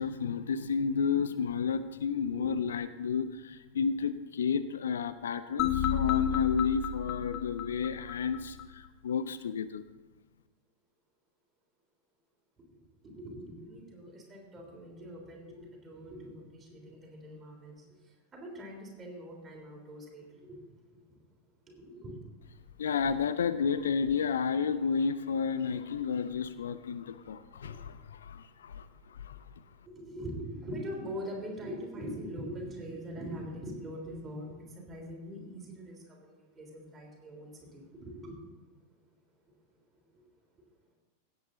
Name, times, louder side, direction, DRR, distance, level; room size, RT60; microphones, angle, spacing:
voice 1, 0.0-9.8 22.8-29.4, left 6 dB, 65° left, 13 dB, 0.5 m, -31 dB
sound 1, 5.6-8.7, left 9 dB, 35° left, 1.0 m, -32 dB
voice 2, 13.0-17.8 18.3-20.6 21.7-22.2 27.6-27.7 29.8-34.5 34.9-38.4 40.1-40.2, equal, 20° right, 0 dB, 3.4 m, -42 dB
16.5 x 8.2 x 3.9 m, 1.2 s
figure-of-eight pair, 90°, 0 cm